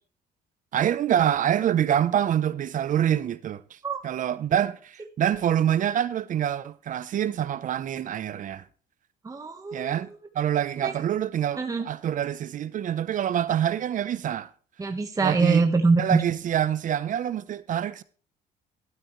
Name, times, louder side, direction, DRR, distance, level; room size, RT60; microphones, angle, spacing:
voice 1, 0.7-3.8 4.0-8.6 9.7-14.5 15.2-15.6 16.0-18.0, right 10 dB, 50° right, 0.8 m, -26 dB
voice 2, 9.2-9.9 10.8-10.9 11.6-11.9 14.8-16.2, right 4 dB, 20° right, 1.3 m, -24 dB
12.5 x 12.5 x 3.2 m
cardioid pair, 110°, 17 cm